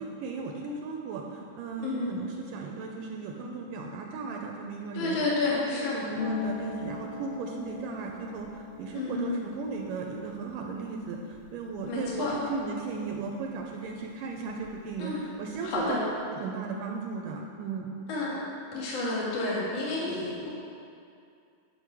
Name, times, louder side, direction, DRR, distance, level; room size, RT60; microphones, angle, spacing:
voice 1, 0.0-5.2 5.5-16.0 16.3-18.0, right 4 dB, 80° right, 1 dB, 2.2 m, -36 dB
voice 2, 4.9-6.0 8.9-9.4 11.9-12.3 15.0-15.2 15.6-16.0 18.1-18.4 18.7-20.5, left 2 dB, 50° left, -5 dB, 2.5 m, -30 dB
Harp, 6.1-13.6 13.9-15.0 15.3-15.9, left 5 dB, 85° left, 1.5 m, -41 dB
11.0 x 5.1 x 6.1 m, 2.4 s
omnidirectional pair, 4.1 m